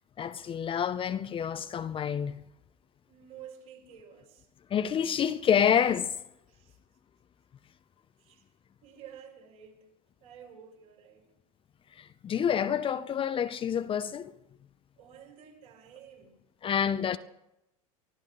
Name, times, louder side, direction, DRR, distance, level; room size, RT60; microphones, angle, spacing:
voice 1, 0.2-2.4 4.7-6.1 12.0-14.3 16.6-17.2, left 8 dB, 30° left, 0.7 m, -28 dB
voice 2, 3.1-4.5 6.5-6.8 8.2-8.5 8.8-9.9 10.2-11.3 15.0-16.4, right 8 dB, 70° right, 6.6 m, -51 dB
24.0 x 14.0 x 3.9 m
hypercardioid pair, 95°, 19 cm